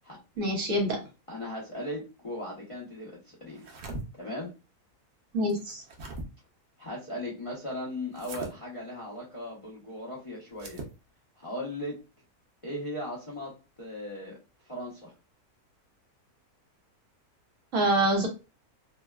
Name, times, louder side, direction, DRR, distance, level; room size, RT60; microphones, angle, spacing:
voice 1, 0.4-1.0 5.3-5.8 17.7-18.3, right 1 dB, 60° right, 1.1 m, -25 dB
voice 2, 1.3-3.7 4.1-4.5 6.8-10.8 11.4-12.0 12.6-13.5 13.8-14.4 14.6-15.1, left 1 dB, 45° left, 0.4 m, -37 dB
sound 1, 3.5-4.0 5.5-6.3 8.1-8.5 10.5-10.9, right 2 dB, 80° right, 0.5 m, -40 dB
2.7 x 2.2 x 2.2 m
omnidirectional pair, 1.6 m